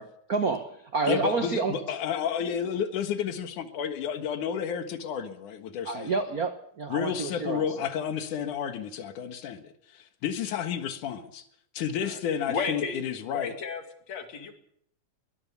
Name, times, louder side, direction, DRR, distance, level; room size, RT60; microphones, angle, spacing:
voice 1, 0.0-0.6 0.9-1.8 5.8-7.9, right 4 dB, 70° right, 0.8 m, -29 dB
voice 2, 1.1-6.1 6.9-11.4 11.7-13.5, left 8 dB, 85° left, 3.1 m, -31 dB
voice 3, 12.5-13.8 14.1-14.5, left 5 dB, 60° left, 3.5 m, -33 dB
22.0 x 19.5 x 7.1 m
omnidirectional pair, 3.4 m